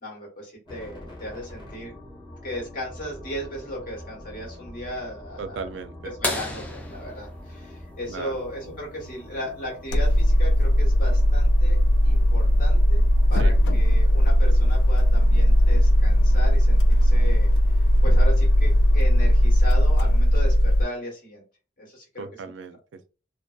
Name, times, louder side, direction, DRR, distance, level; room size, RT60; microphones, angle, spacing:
voice 1, 0.0-1.9 2.4-5.7 6.0-21.4 21.8-22.2, left 1 dB, 50° left, 1.3 m, -36 dB
sound 1, 0.7-19.6, left 1 dB, 25° left, 0.9 m, -44 dB
voice 2, 5.4-6.1 8.1-8.3 13.3-13.5 22.2-23.1, right 4 dB, 90° right, 0.3 m, -36 dB
sound 2, 6.2-8.7 10.6-10.7 12.9-13.0 14.7-15.0 15.8-15.9, left 2 dB, 10° left, 0.4 m, -33 dB
sound 3, 9.9-20.8, equal, 85° left, 0.3 m, -18 dB
2.6 x 2.1 x 2.3 m
head